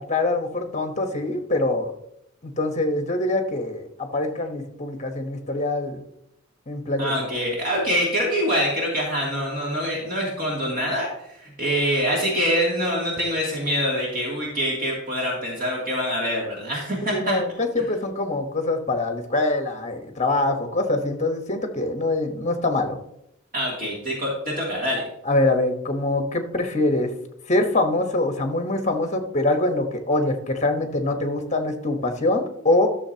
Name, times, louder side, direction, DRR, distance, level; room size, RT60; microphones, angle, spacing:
voice 1, 0.0-1.9 2.4-6.0 6.7-7.2 17.0-23.0 25.2-27.1 27.5-32.9, left 2 dB, 35° left, 6 dB, 1.1 m, -24 dB
voice 2, 7.0-17.4 23.5-25.0, equal, 40° right, -4 dB, 2.7 m, -25 dB
12.5 x 6.9 x 2.9 m, 0.78 s
head